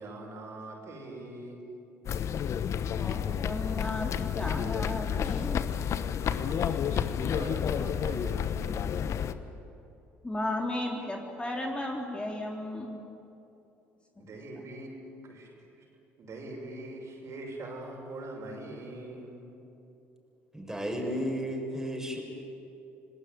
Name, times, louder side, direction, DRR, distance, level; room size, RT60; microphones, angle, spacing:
voice 1, 0.0-1.6 6.2-7.1 7.3-9.3 14.2-15.0 15.2-15.8 16.2-19.6, right 2 dB, 50° right, 1 dB, 6.5 m, -43 dB
sound 1, 2.1-9.3, left 8 dB, 50° left, 1.1 m, -30 dB
voice 2, 2.9-5.6 10.2-13.0, left 1 dB, 15° left, 0 dB, 3.4 m, -34 dB
voice 3, 20.5-22.2, equal, 5° right, 1 dB, 7.0 m, -33 dB
27.0 x 19.5 x 9.5 m, 2.9 s
hypercardioid pair, 60°, 6 cm